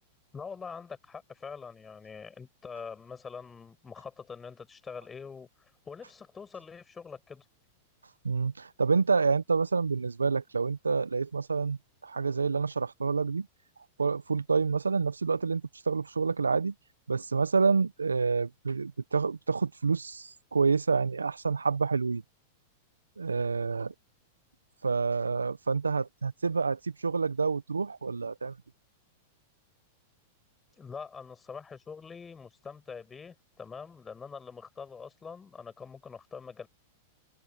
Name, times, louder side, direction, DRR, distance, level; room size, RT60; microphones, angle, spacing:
voice 1, 0.3-7.5 30.8-36.7, left 5 dB, 20° left, 6.8 m, -44 dB
voice 2, 8.2-13.5 14.0-15.6 15.9-16.7 17.1-22.2 23.2-23.9 24.8-28.5, right 4 dB, 90° right, 1.2 m, -28 dB
hypercardioid pair, 100°, 0 cm